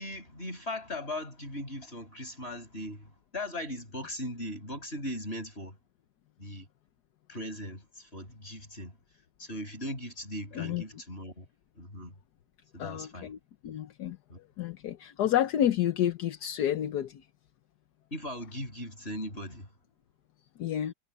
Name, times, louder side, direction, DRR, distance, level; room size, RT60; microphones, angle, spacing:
voice 1, 0.0-5.8 6.4-6.7 7.3-9.0 9.4-11.5 11.7-12.1 12.7-13.3 14.3-14.4 18.1-19.7, left 1 dB, 35° left, 6.1 m, -39 dB
voice 2, 12.8-13.4 13.6-17.3 20.6-20.9, left 11 dB, 70° left, 1.4 m, -30 dB
omnidirectional pair, 1.9 m